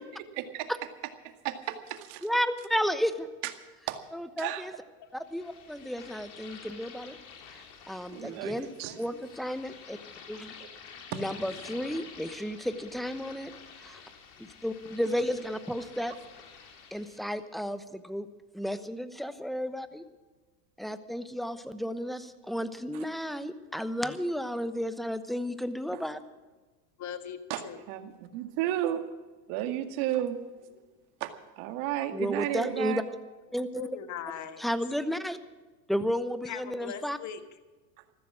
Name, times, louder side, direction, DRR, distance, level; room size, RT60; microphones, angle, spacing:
voice 1, 0.4-0.7 1.2-2.3 3.4-3.5 3.9-4.0 4.4-4.7 8.1-9.0 11.1-11.2 22.9-23.1 25.9-26.0 27.5-27.6 27.9-29.1 29.5-30.4 31.2-33.0, right 12 dB, 60° right, 7 dB, 2.1 m, -33 dB
voice 2, 2.2-3.3 4.1-4.7 5.1-7.2 7.5-7.6 7.9-8.7 9.0-10.0 10.3-10.5 11.1-13.5 13.8-14.0 14.4-16.1 16.9-18.3 18.5-20.0 20.8-26.2 32.1-33.0 33.5-33.9 34.6-35.4 35.9-37.2, equal, ahead, 12 dB, 0.9 m, -32 dB
sound 1, 5.2-17.4, left 6 dB, 55° left, 3.9 m, -49 dB
voice 3, 27.0-27.8 30.8-30.9 33.7-34.6 36.5-37.4, left 9 dB, 35° left, 9 dB, 1.6 m, -40 dB
15.0 x 14.0 x 6.1 m, 1.3 s
supercardioid pair, 105°, 47 cm